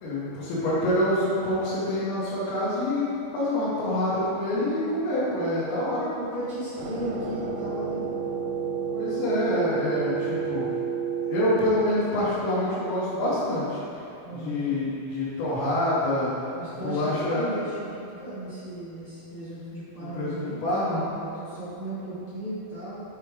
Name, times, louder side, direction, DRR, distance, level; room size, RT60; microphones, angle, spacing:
voice 1, 0.0-3.1 3.3-6.1 8.9-10.7 11.2-13.8 14.4-16.3 16.7-17.4 20.0-21.0, left 1 dB, 85° left, -10 dB, 3.3 m, -26 dB
voice 2, 6.1-8.1 14.2-14.7 16.5-23.0, right 1 dB, 60° left, -13 dB, 1.4 m, -36 dB
sound 1, 6.8-11.6, right 7 dB, 80° right, 2.6 m, -30 dB
8.3 x 3.4 x 4.6 m, 2.7 s
omnidirectional pair, 5.0 m